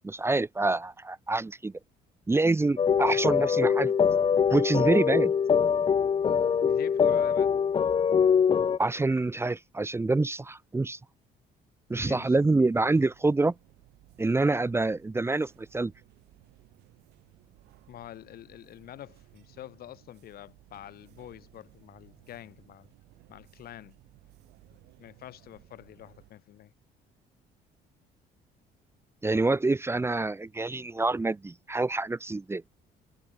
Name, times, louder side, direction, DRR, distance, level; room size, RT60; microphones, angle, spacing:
voice 1, 0.0-1.7 2.3-3.9 4.5-5.3 8.8-11.0 11.9-13.5 14.2-15.9 29.2-32.6, right 3 dB, 15° right, 1.1 m, -26 dB
sound 1, 2.8-8.8, left 7 dB, 30° left, 0.7 m, -23 dB
voice 2, 6.6-7.5 11.9-12.4 17.9-22.9 23.3-24.0 24.7-26.7, left 12 dB, 65° left, 3.2 m, -46 dB
sound 2, 12.7-26.3, right 18 dB, 85° right, 5.3 m, -59 dB
cardioid pair, 110°, 17 cm